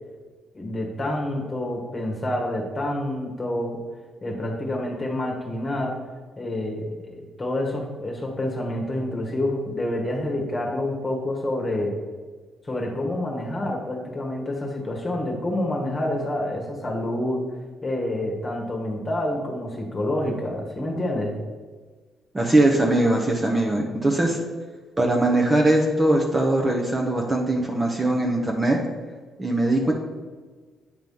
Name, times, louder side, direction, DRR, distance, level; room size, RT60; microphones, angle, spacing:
voice 1, 0.5-3.8 4.2-6.0 6.4-11.9 12.6-17.4 17.8-21.4, left 1 dB, 25° left, 0 dB, 1.4 m, -28 dB
voice 2, 22.3-24.4 25.0-28.8 29.4-29.9, right 1 dB, 20° right, 0 dB, 0.9 m, -21 dB
9.1 x 3.0 x 5.5 m, 1.4 s
cardioid pair, 90°, 0 cm